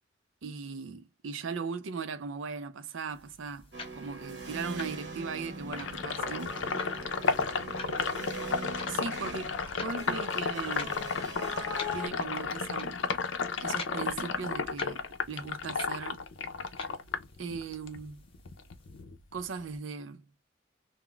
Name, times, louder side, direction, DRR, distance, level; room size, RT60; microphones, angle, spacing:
voice 1, 0.4-6.9 8.9-11.0 11.9-13.1 13.6-16.2 17.4-18.2 19.3-20.3, right 5 dB, 90° right, 0.5 m, -38 dB
sound 1, 3.1-19.0, left 3 dB, 30° left, 0.5 m, -49 dB
sound 2, 3.7-12.1, right 1 dB, 65° right, 0.9 m, -41 dB
Sink (filling or washing), 5.7-18.0 18.3-19.8, left 5 dB, 85° left, 0.5 m, -33 dB
2.3 x 2.1 x 3.7 m
head